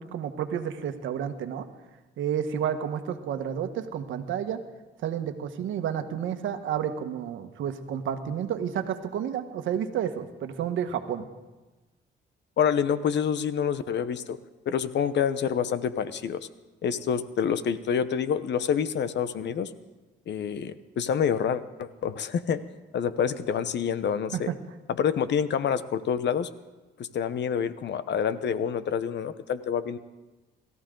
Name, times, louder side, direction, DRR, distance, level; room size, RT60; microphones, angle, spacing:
voice 1, 0.0-1.7 2.2-4.6 5.0-11.3 24.3-24.4, right 9 dB, 80° right, 7 dB, 1.3 m, -30 dB
voice 2, 12.6-14.4 14.7-16.5 16.8-19.7 20.3-22.6 22.9-24.5 24.9-26.5 27.0-30.0, left 7 dB, 60° left, 13 dB, 0.9 m, -27 dB
27.0 x 14.0 x 3.9 m, 1.2 s
cardioid pair, 90°, 20 cm